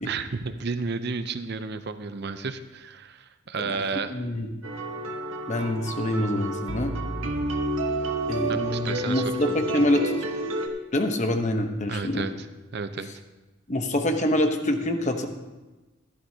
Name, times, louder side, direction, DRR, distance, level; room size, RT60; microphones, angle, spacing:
voice 1, 0.0-4.1 8.5-9.7 11.9-12.5 12.7-13.1, right 4 dB, 55° right, 10 dB, 0.6 m, -32 dB
voice 2, 4.1-4.6 5.5-6.9 8.3-10.3 10.9-12.2 13.7-15.3, left 1 dB, 35° left, 6 dB, 0.9 m, -26 dB
sound 1, 4.6-10.7, right 2 dB, 75° right, 1.1 m, -30 dB
14.5 x 12.5 x 2.8 m, 1.2 s
head